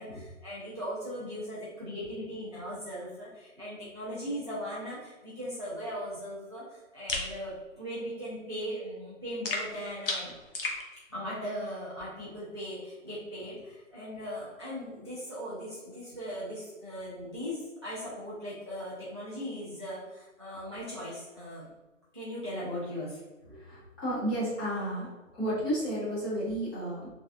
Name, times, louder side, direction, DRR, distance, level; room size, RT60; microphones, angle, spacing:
voice 1, 0.0-10.3 11.1-21.7 22.1-23.2, equal, 25° right, -10 dB, 0.4 m, -38 dB
sound 1, 7.1-7.3 9.4-10.8, left 3 dB, 45° left, 0.7 m, -33 dB
voice 2, 23.5-25.1 25.4-27.1, right 1 dB, 10° left, -11 dB, 0.9 m, -32 dB
3.1 x 2.4 x 2.4 m, 1.1 s
hypercardioid pair, 150°, 39 cm